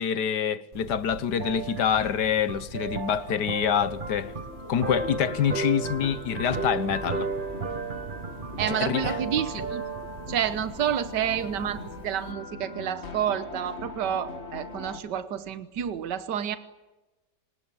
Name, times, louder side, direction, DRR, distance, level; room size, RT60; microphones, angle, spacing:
voice 1, 0.0-4.3 4.7-7.3 8.7-9.2, left 8 dB, 70° left, 1.6 m, -26 dB
sound 1, 0.7-12.3, right 4 dB, 35° right, 1.2 m, -35 dB
sound 2, 4.2-15.0, left 3 dB, 40° left, 2.4 m, -41 dB
voice 2, 8.6-9.8 10.3-16.6, right 9 dB, 80° right, 1.7 m, -29 dB
27.0 x 20.0 x 9.7 m
omnidirectional pair, 1.9 m